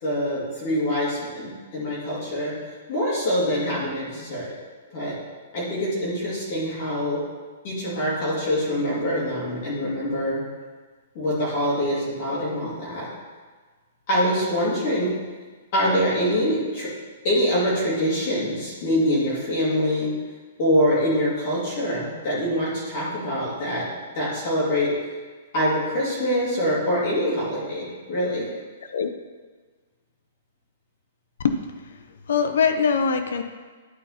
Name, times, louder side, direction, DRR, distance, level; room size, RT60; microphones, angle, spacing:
voice 1, 0.0-2.5 2.9-4.5 4.9-5.1 5.5-7.2 7.6-10.4 11.1-13.0 14.1-15.1 15.7-16.9 17.2-20.1 20.6-23.8 24.1-24.9 25.5-28.5, equal, 40° left, -8 dB, 2.6 m, -24 dB
voice 2, 31.4-32.0 32.3-33.4, left 6 dB, 70° left, 8 dB, 0.6 m, -23 dB
11.5 x 4.2 x 4.1 m, 1.4 s
hypercardioid pair, 175°, 0 cm